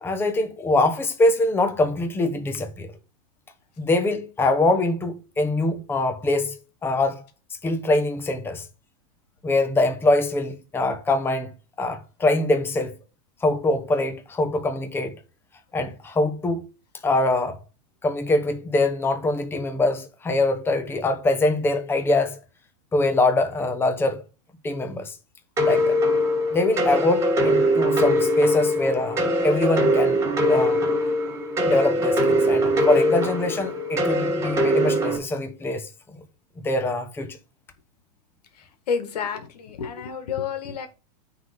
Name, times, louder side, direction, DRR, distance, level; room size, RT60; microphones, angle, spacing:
voice 1, 0.0-2.9 3.8-7.2 7.6-8.6 9.4-11.5 11.8-12.9 13.4-15.1 15.7-16.6 17.0-17.6 18.0-22.4 22.9-24.2 24.6-25.1 25.6-26.0 26.5-30.9 31.6-35.9 36.6-37.4, left 2 dB, 10° left, 1.1 m, -23 dB
sound 1, 25.6-35.2, equal, 15° right, 2.4 m, -22 dB
voice 2, 38.9-40.9, left 6 dB, 80° left, 2.0 m, -29 dB
9.3 x 3.9 x 5.1 m
supercardioid pair, 145°, 20 cm